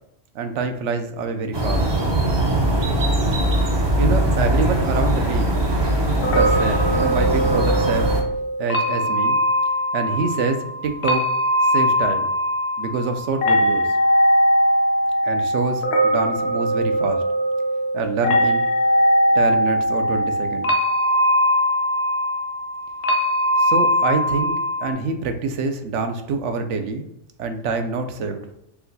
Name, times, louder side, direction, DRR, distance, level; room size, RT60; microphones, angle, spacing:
voice 1, 0.3-1.9 4.0-5.5 6.2-8.1 8.6-9.4 9.9-11.3 11.6-12.3 12.8-13.9 15.2-17.2 17.9-18.6 19.3-20.7 23.6-27.1 27.4-28.4, right 4 dB, 75° right, 7 dB, 0.9 m, -26 dB
sound 1, 1.5-8.2, right 1 dB, 35° right, 0.4 m, -20 dB
sound 2, 6.2-24.9, equal, 65° left, 0.8 m, -20 dB
4.6 x 2.2 x 3.9 m, 0.81 s
omnidirectional pair, 1.3 m